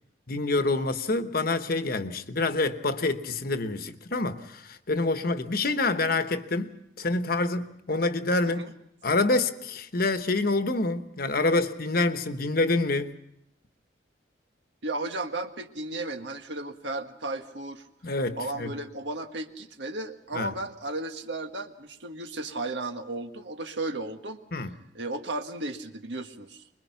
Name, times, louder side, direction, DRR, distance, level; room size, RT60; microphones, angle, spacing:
voice 1, 0.3-8.7 9.0-13.2 18.0-18.7 20.3-20.5 24.5-24.8, left 2 dB, 55° left, 1.2 m, -27 dB
voice 2, 14.8-17.8 18.4-24.4 24.9-26.7, right 2 dB, 75° right, 1.6 m, -34 dB
25.0 x 22.0 x 5.8 m
head